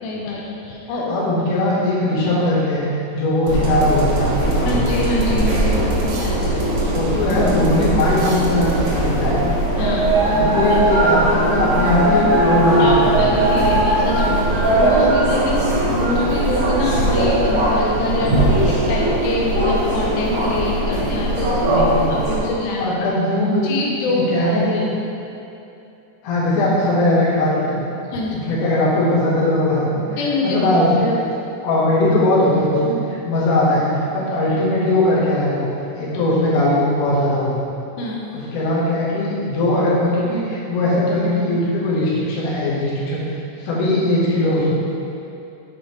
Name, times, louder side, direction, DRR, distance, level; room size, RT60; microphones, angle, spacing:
voice 1, 0.0-1.2 4.7-7.0 9.8-10.8 12.8-23.1 23.6-24.8 28.1-28.4 30.2-30.7 38.0-38.3, left 2 dB, 85° left, -2 dB, 2.8 m, -25 dB
voice 2, 1.1-4.9 6.9-9.5 10.3-13.4 21.7-22.0 22.8-23.7 24.1-24.8 26.2-27.8 28.3-31.2 31.6-33.0 33.2-35.7 36.0-37.6 38.3-43.2 43.6-44.7, left 1 dB, 65° left, -8 dB, 2.2 m, -19 dB
sound 1, 3.5-22.4, right 1 dB, 60° right, 1.9 m, -19 dB
sound 2, 3.5-9.3, equal, 75° right, 2.5 m, -32 dB
7.4 x 4.8 x 3.2 m, 2.8 s
omnidirectional pair, 4.8 m